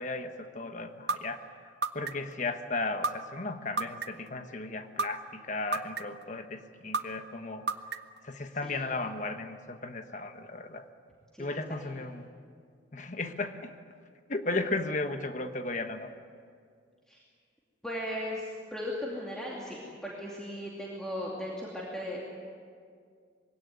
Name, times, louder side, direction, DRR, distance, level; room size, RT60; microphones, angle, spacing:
voice 1, 0.0-1.4 1.9-7.7 8.2-10.8 11.4-12.3 12.9-13.7 14.3-16.1, left 2 dB, 40° left, 8 dB, 1.2 m, -35 dB
sound 1, 1.1-1.2 1.8-2.3 3.0-3.1 3.8-4.3 5.0-5.1 5.7-6.2 6.9-7.0 7.7-8.2, right 3 dB, 55° right, 0.8 m, -29 dB
voice 2, 8.6-8.9 11.3-12.0 17.1-17.2 17.8-22.2, left 1 dB, 5° left, -5 dB, 2.5 m, -37 dB
22.0 x 17.0 x 9.5 m, 2.1 s
head